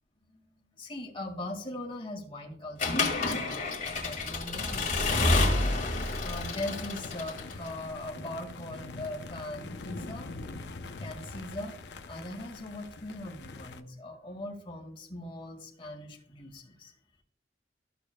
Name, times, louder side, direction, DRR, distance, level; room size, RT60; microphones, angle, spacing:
voice 1, 0.8-5.7 6.2-10.3 11.0-11.8 12.1-16.9, left 1 dB, 30° left, 0 dB, 1.9 m, -40 dB
Accelerating revving vroom / Mechanisms, 2.8-7.7, left 2 dB, 50° left, 2.0 m, -29 dB
sound 1, 5.2-13.8, left 3 dB, 75° left, 0.7 m, -43 dB
14.0 x 6.8 x 2.2 m, 0.65 s
head